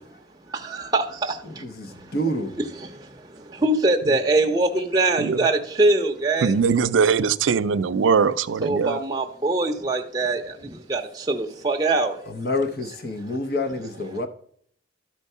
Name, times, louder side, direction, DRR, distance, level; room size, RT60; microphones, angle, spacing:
voice 1, 0.7-1.3 3.6-6.5 8.6-10.4 10.9-11.0 11.3-12.1, right 2 dB, 20° right, 0.6 m, -22 dB
voice 2, 1.5-2.6 12.3-14.3, left 1 dB, 50° left, 0.7 m, -28 dB
voice 3, 6.4-9.0, right 6 dB, 85° right, 0.4 m, -21 dB
12.0 x 4.5 x 5.5 m
head